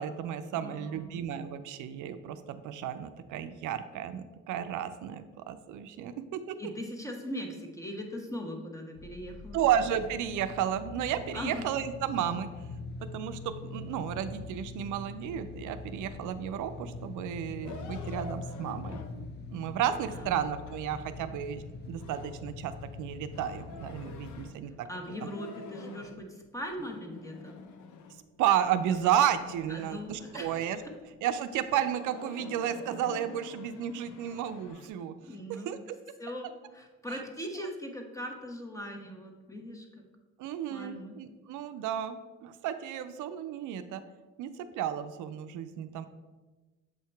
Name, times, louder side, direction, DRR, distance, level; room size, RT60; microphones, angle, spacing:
voice 1, 0.0-6.6 9.5-12.5 13.1-22.7 23.0-24.9 28.4-30.8 31.2-35.1 35.5-35.8 37.1-37.2 37.6-37.7 40.4-44.0 44.4-44.5 44.8-46.1, right 10 dB, 80° right, 10 dB, 0.5 m, -32 dB
voice 2, 0.5-1.2 6.6-9.6 11.3-11.6 20.1-20.3 24.9-27.5 29.7-30.6 35.3-35.7 36.2-40.0 40.7-41.1, equal, 10° left, 2 dB, 1.0 m, -40 dB
sound 1, 8.9-24.5, left 4 dB, 35° left, 0.4 m, -43 dB
sound 2, 17.6-21.2 22.0-24.7 25.0-26.2 26.6-28.4 28.6-31.0 31.5-34.9, left 4 dB, 75° left, 0.6 m, -48 dB
7.5 x 2.8 x 4.5 m, 1.2 s
cardioid pair, 90°, 30 cm